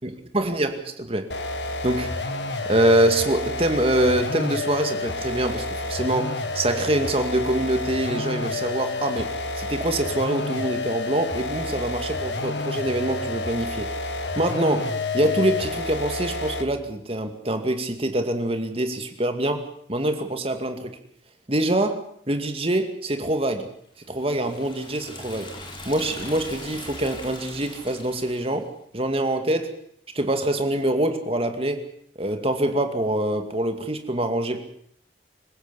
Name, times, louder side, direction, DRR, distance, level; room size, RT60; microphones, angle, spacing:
voice 1, 0.3-1.3 1.8-2.2 2.7-9.3 9.6-13.9 14.4-19.6 19.9-20.9 21.5-22.0 22.3-23.7 24.1-25.5 25.9-28.7 28.9-29.7 30.1-31.8 32.2-34.6, right 1 dB, 35° right, 6 dB, 2.3 m, -24 dB
sound 1, 1.3-16.8, left 2 dB, 80° left, 2.0 m, -29 dB
Liquid, 24.0-28.7, left 2 dB, 30° left, 4.3 m, -40 dB
26.0 x 16.0 x 7.1 m, 0.67 s
head